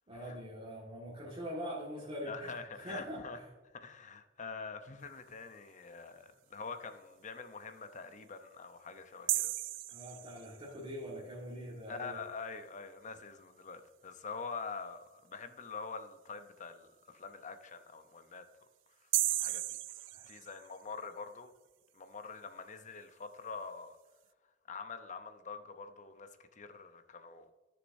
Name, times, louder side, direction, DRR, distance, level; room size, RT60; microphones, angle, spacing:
voice 1, 0.1-3.5 9.9-12.2 20.1-20.3, equal, 30° right, 1.7 m, -43 dB
voice 2, 2.3-3.4 3.7-9.5 11.9-18.4 19.4-19.6 20.0-21.5 21.9-24.0 24.7-27.5, left 4 dB, 40° left, 0.7 m, -45 dB
sound 1, 9.3-10.8 19.1-20.9, right 16 dB, 70° right, 0.4 m, -35 dB
14.0 x 6.7 x 2.6 m
head